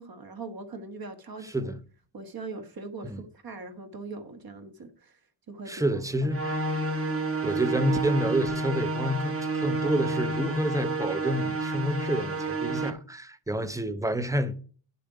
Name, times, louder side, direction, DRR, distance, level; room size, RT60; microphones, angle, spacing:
voice 1, 0.0-1.7 2.1-5.1 5.5-6.3, right 3 dB, 55° right, 1.5 m, -41 dB
voice 2, 1.4-1.8 3.0-3.2 5.7-6.6 7.4-14.5, right 1 dB, 10° right, 0.7 m, -29 dB
sound 1, 6.3-12.9, right 2 dB, 30° right, 1.1 m, -30 dB
9.8 x 6.9 x 4.9 m
wide cardioid pair, 140°, 44 cm